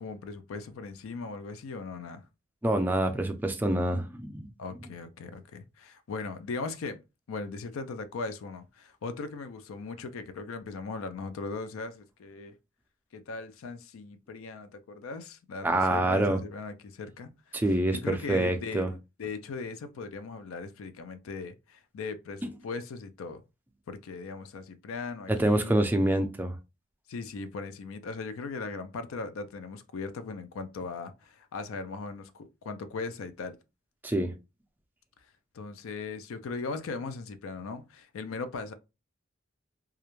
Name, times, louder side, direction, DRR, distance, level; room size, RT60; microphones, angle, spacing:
voice 1, 0.0-2.2 4.6-7.0 7.3-12.5 13.1-17.3 17.9-23.4 23.9-25.8 27.1-33.6 35.5-38.7, left 4 dB, 85° left, 0.4 m, -38 dB
voice 2, 2.6-4.5 15.6-16.4 17.5-18.9 25.3-26.6 34.0-34.3, right 1 dB, 10° right, 0.3 m, -26 dB
2.3 x 2.1 x 2.9 m
head